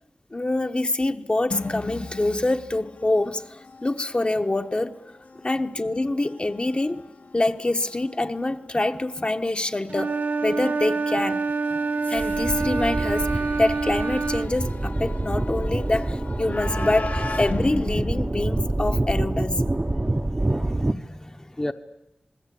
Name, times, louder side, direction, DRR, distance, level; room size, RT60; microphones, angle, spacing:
voice 1, 0.3-4.9 5.4-7.1 7.3-10.2 10.4-11.4 11.7-11.8 12.1-19.6, left 2 dB, 35° left, 1.2 m, -25 dB
sound 1, 1.5-19.2, left 3 dB, 70° left, 1.7 m, -39 dB
Wind instrument woodwind instrument, 9.9-14.5, right 4 dB, 70° right, 1.1 m, -26 dB
sound 2, 12.2-20.9, right 1 dB, 25° right, 0.9 m, -27 dB
voice 2, 20.4-21.7, left 1 dB, 20° left, 1.0 m, -35 dB
27.0 x 20.5 x 8.5 m
wide cardioid pair, 55°, 3 cm